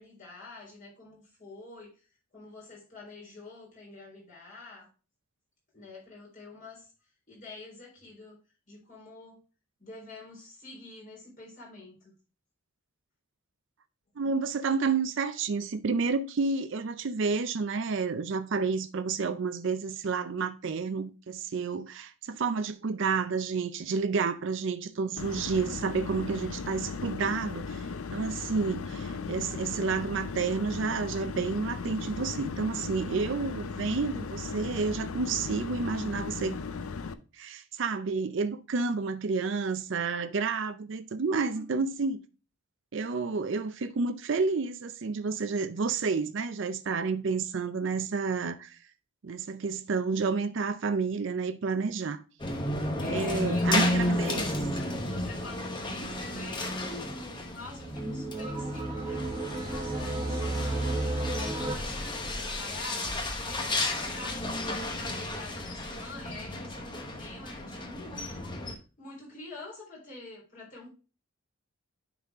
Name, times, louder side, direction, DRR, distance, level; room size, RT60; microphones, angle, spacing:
voice 1, 0.0-1.9 2.3-4.9 5.7-6.8 7.3-8.4 8.7-9.4 9.8-12.2 41.4-41.8 53.0-54.6 55.0-68.7 69.0-70.9, left 2 dB, 40° left, 3.9 m, -46 dB
voice 2, 14.2-36.6 37.3-42.2 42.9-48.8 49.2-52.2 53.1-54.5, right 4 dB, 60° right, 0.5 m, -30 dB
sound 1, 25.2-37.1, left 4 dB, 80° left, 0.5 m, -37 dB
sound 2, 52.4-68.7, left 1 dB, 20° left, 1.0 m, -33 dB
sound 3, 57.7-61.7, right 2 dB, 20° right, 1.0 m, -32 dB
9.6 x 4.0 x 3.5 m
head